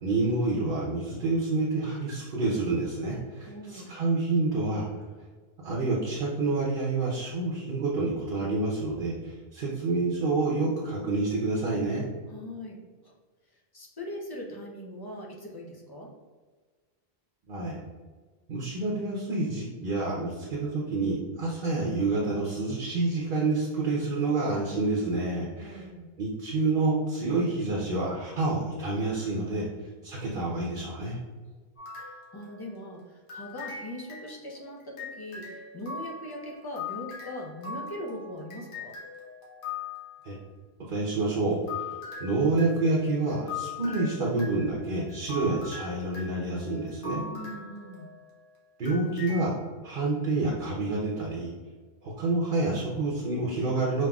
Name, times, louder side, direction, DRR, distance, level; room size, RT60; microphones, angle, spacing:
voice 1, 0.0-4.9 5.6-12.1 17.5-17.8 18.5-25.9 26.2-29.7 30.0-31.2 40.2-40.3 40.9-41.9 42.2-47.2 48.8-49.6 49.8-51.5 52.0-54.1, right 3 dB, 60° right, -4 dB, 0.9 m, -28 dB
voice 2, 3.4-3.9 12.3-13.1 13.7-16.1 25.6-26.1 32.0-38.9 47.2-48.1, left 1 dB, 25° left, -2 dB, 0.6 m, -40 dB
sound 1, 31.8-32.9 33.3-40.2 41.2-48.4 48.8-49.4, left 5 dB, 60° left, 1.1 m, -41 dB
5.4 x 2.7 x 2.3 m, 1.4 s
omnidirectional pair, 1.0 m